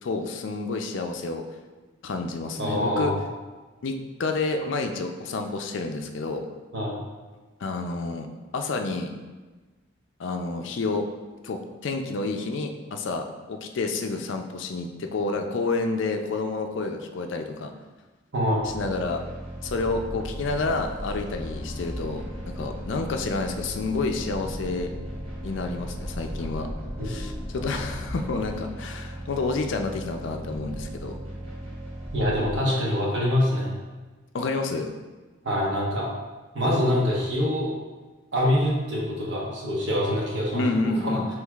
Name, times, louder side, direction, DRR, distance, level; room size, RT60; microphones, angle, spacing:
voice 1, 0.0-1.4 2.0-3.1 3.8-6.4 7.6-8.3 8.5-9.1 10.2-11.1 11.4-17.7 18.6-19.2 19.6-24.9 25.4-26.7 27.0-31.1 34.3-34.9 40.5-41.3, left 3 dB, 65° left, 5 dB, 0.4 m, -29 dB
voice 2, 2.6-3.2 6.7-7.0 18.3-18.6 27.0-27.2 32.1-33.7 35.4-36.1 36.5-37.7 38.3-41.2, left 1 dB, 60° right, -4 dB, 1.1 m, -25 dB
sound 1, 18.6-32.6, equal, 80° right, 1.4 m, -37 dB
sound 2, 20.5-28.6, equal, 40° left, 1.0 m, -41 dB
6.2 x 3.1 x 2.4 m, 1.3 s
head